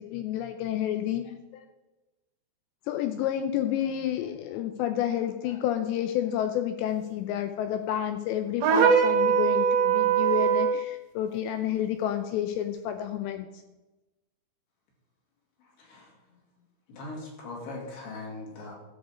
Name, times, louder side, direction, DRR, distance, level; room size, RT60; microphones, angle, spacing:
voice 1, 0.0-1.7 2.9-13.6, left 11 dB, 80° left, 7 dB, 2.6 m, -30 dB
sound 1, 8.6-10.8, right 7 dB, 70° right, 3.0 m, -22 dB
voice 2, 15.8-16.1 16.9-18.7, left 2 dB, 60° left, -2 dB, 4.0 m, -40 dB
13.0 x 7.2 x 5.1 m, 1.1 s
omnidirectional pair, 5.5 m